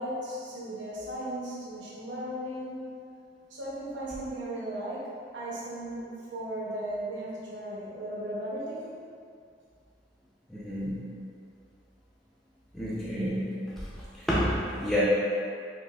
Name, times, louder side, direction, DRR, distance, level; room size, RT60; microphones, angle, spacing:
voice 1, 0.0-2.8 3.5-8.9, right 1 dB, 85° right, -7 dB, 0.7 m, -36 dB
voice 2, 10.5-11.0 12.7-13.5 14.3-15.0, equal, ahead, -9 dB, 0.4 m, -29 dB
4.9 x 2.4 x 2.2 m, 2.4 s
head